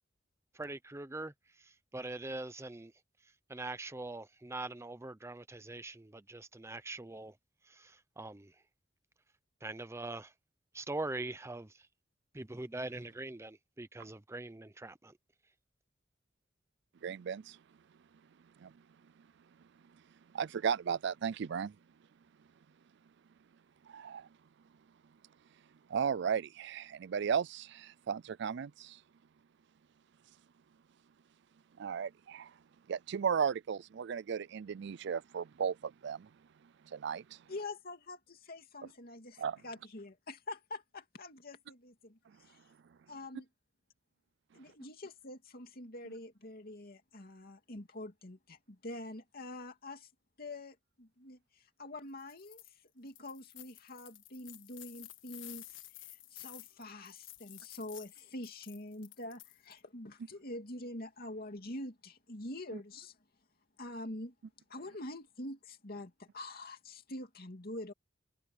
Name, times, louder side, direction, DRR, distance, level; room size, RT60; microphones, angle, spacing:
voice 1, 0.6-1.3 1.9-2.9 3.5-7.3 7.8-8.5 9.6-10.3 10.7-11.7 12.3-15.1, right 2 dB, 15° right, 0.7 m, -42 dB
voice 2, 17.0-17.6 18.6-18.7 20.3-21.8 23.9-24.3 25.9-29.0 31.8-32.5 32.9-36.3 36.9-37.2 39.4-39.6 62.7-62.8, right 7 dB, 65° right, 0.4 m, -35 dB
voice 3, 37.5-42.6 43.1-43.5 44.5-50.1 50.4-63.2 63.8-64.3 64.7-67.9, left 1 dB, 55° left, 2.5 m, -46 dB
sound 1, 52.2-52.7 53.1-59.8, left 15 dB, 85° left, 1.5 m, -52 dB
head